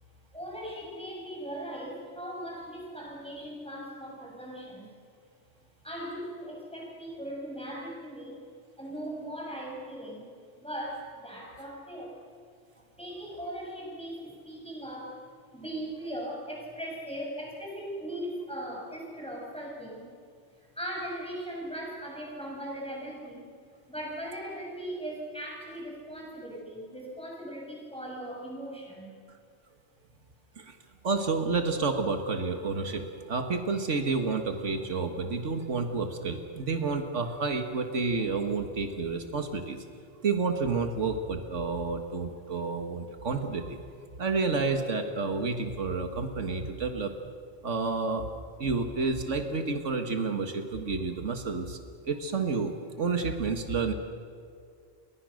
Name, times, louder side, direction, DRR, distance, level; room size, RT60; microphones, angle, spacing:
voice 1, 0.3-4.9 5.8-8.4 8.8-10.3 10.6-12.2 13.0-15.3 15.5-20.1 20.6-23.5 23.9-29.2 35.2-35.3 40.1-40.2, right 1 dB, 5° left, -2 dB, 6.9 m, -39 dB
voice 2, 31.0-39.8 40.2-43.8 44.2-47.2 47.6-48.3 48.6-51.8 52.0-53.9, right 4 dB, 85° right, 6 dB, 2.0 m, -30 dB
29.5 x 23.0 x 6.5 m, 2.3 s
omnidirectional pair, 1.2 m